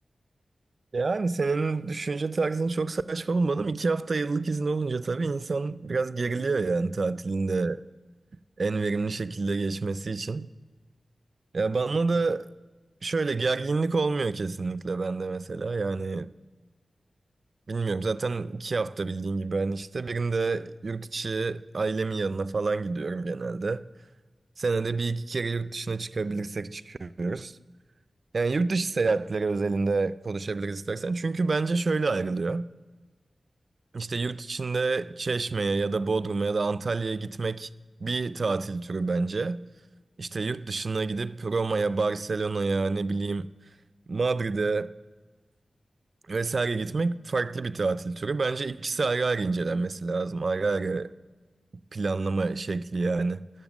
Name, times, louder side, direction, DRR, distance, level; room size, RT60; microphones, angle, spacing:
voice 1, 0.9-7.8 8.6-10.5 11.5-12.5 13.0-16.3 17.7-23.9 24.6-27.6 28.3-32.7 33.9-37.7 38.0-39.6 40.2-43.5 44.1-44.9 46.3-51.1 51.9-53.5, right 3 dB, 55° right, 0.3 m, -28 dB
11.0 x 7.1 x 7.1 m
wide cardioid pair, 95°, 0 cm